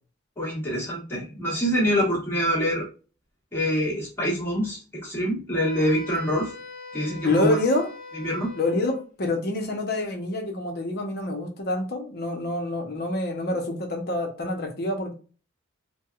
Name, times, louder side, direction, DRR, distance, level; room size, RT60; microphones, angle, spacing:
voice 1, 0.4-2.9 3.5-6.5 6.9-7.6 8.2-8.5, equal, 10° left, -6 dB, 1.4 m, -25 dB
Wind instrument woodwind instrument, 5.6-9.1, left 3 dB, 35° left, 1.4 m, -42 dB
voice 2, 7.2-7.9 8.6-15.1, left 2 dB, 50° left, 3 dB, 0.8 m, -26 dB
4.5 x 2.3 x 2.4 m, 0.36 s
head